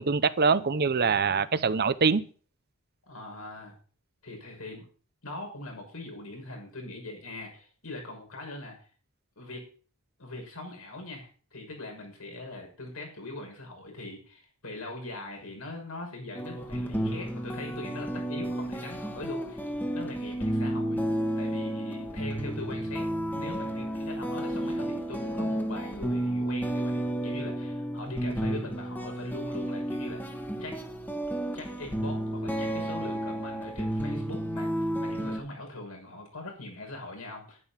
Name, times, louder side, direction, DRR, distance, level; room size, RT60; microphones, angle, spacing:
voice 1, 0.0-2.2, right 5 dB, 50° right, 0.8 m, -24 dB
voice 2, 3.0-3.7 4.2-4.9 5.2-8.8 9.4-9.7 10.2-19.7 19.9-21.0 21.4-30.8 31.5-37.6, left 2 dB, 80° left, 6.2 m, -41 dB
sound 1, 16.3-35.4, right 1 dB, 10° left, 1.5 m, -32 dB
11.0 x 11.0 x 5.8 m
head